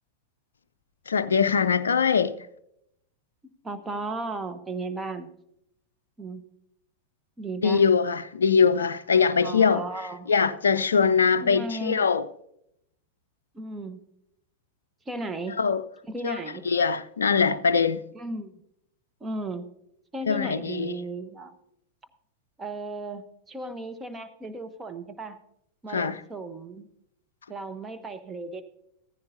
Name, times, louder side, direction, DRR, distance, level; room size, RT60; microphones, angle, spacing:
voice 1, 1.1-2.4 7.6-9.8 10.3-12.3 15.6-15.8 16.2-16.4 16.7-18.0 20.3-20.9 25.9-26.2, left 6 dB, 70° left, 0.4 m, -22 dB
voice 2, 3.6-5.3 6.2-6.4 7.4-7.8 9.4-10.3 11.4-12.1 13.5-14.0 15.1-15.6 16.1-16.7 18.1-18.5 19.2-19.7 20.1-21.5 22.6-25.4 25.8-26.9 27.5-28.6, right 2 dB, 15° right, 1.2 m, -35 dB
15.0 x 15.0 x 2.7 m
figure-of-eight pair, 90°, 0 cm